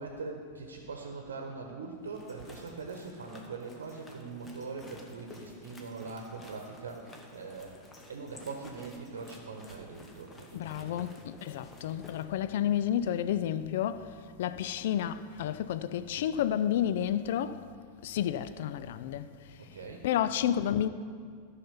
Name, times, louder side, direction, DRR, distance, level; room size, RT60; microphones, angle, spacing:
voice 1, 0.0-11.1 19.6-20.1, right 4 dB, 65° right, 1.1 m, -42 dB
sound 1, 2.0-12.3, left 2 dB, 15° left, 1.2 m, -53 dB
voice 2, 10.5-17.7 18.0-20.9, left 10 dB, 55° left, 0.3 m, -31 dB
13.5 x 5.8 x 5.6 m
figure-of-eight pair, 90°, 0 cm